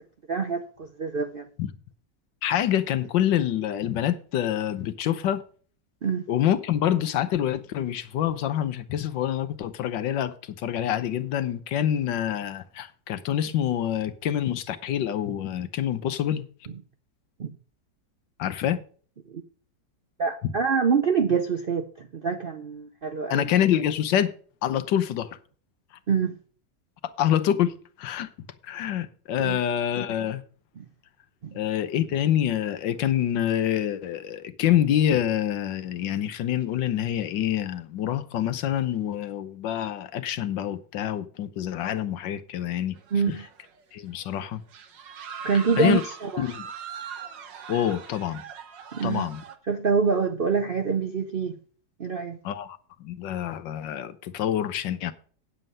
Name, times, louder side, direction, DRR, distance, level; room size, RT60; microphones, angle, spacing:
voice 1, 0.3-1.5 6.0-6.2 17.4-17.5 19.3-19.4 20.2-23.5 26.1-26.4 29.4-29.6 30.8-30.9 31.4-31.5 43.1-43.4 45.4-46.5 48.9-49.3 49.7-51.6 52.0-52.4, right 5 dB, 60° right, 0.5 m, -26 dB
voice 2, 2.4-5.4 6.3-16.4 18.4-18.8 20.4-20.5 23.3-24.3 24.6-25.4 27.2-28.3 28.7-30.4 31.5-43.0 43.3-43.4 43.9-44.6 45.8-46.0 46.4-46.7 47.7-48.4 49.0-49.4 52.4-55.1, left 10 dB, 85° left, 1.6 m, -26 dB
sound 1, 43.0-43.8 44.1-44.3 44.7-49.6, right 7 dB, 85° right, 1.9 m, -41 dB
9.2 x 7.6 x 5.4 m
omnidirectional pair, 1.9 m